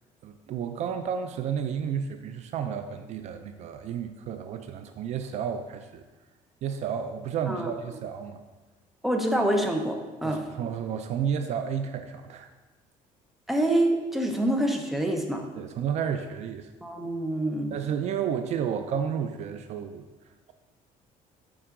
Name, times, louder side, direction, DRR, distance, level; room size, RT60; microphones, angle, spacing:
voice 1, 0.2-6.0 6.6-8.4 10.2-12.5 15.6-16.7 17.7-20.0, right 8 dB, 50° right, 8 dB, 0.4 m, -31 dB
voice 2, 9.0-10.4 13.5-15.4 16.8-17.7, right 1 dB, ahead, 2 dB, 0.6 m, -26 dB
7.1 x 4.9 x 3.7 m, 1.2 s
cardioid pair, 145°, 15 cm